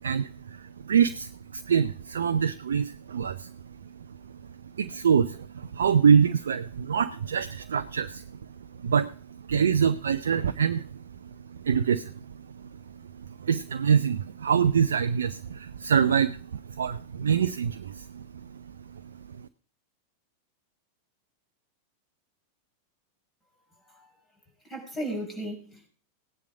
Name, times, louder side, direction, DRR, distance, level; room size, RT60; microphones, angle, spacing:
voice 1, 0.0-3.5 4.8-8.2 8.8-9.1 9.5-10.9 11.5-12.2 13.2-18.3 18.9-19.0 19.3-19.5, right 7 dB, 65° right, 9 dB, 0.6 m, -25 dB
voice 2, 24.6-25.9, right 1 dB, 15° left, 3 dB, 6.3 m, -35 dB
17.0 x 10.5 x 4.9 m, 0.42 s
figure-of-eight pair, 90°, 0 cm